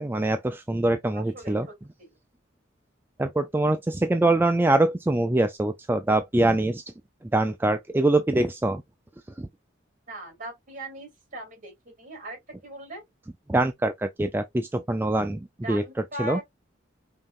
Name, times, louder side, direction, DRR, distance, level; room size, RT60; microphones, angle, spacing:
voice 1, 0.0-1.7 3.2-6.8 7.3-8.8 9.4-9.5 13.5-15.8 16.2-16.4, right 2 dB, 10° right, 0.3 m, -24 dB
voice 2, 1.1-2.1 10.1-13.0 15.6-16.4, right 1 dB, 45° right, 3.0 m, -39 dB
5.3 x 3.1 x 2.5 m
head